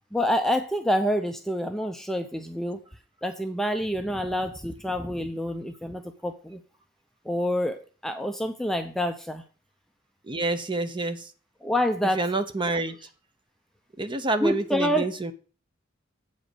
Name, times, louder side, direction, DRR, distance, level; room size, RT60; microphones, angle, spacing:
voice 1, 0.1-2.8 3.2-6.6 7.3-9.4 11.6-12.2 14.4-15.1, equal, ahead, 0.6 m, -27 dB
voice 2, 10.3-11.2 12.1-13.0 14.0-15.3, right 2 dB, 25° right, 0.9 m, -27 dB
8.4 x 5.2 x 6.3 m
head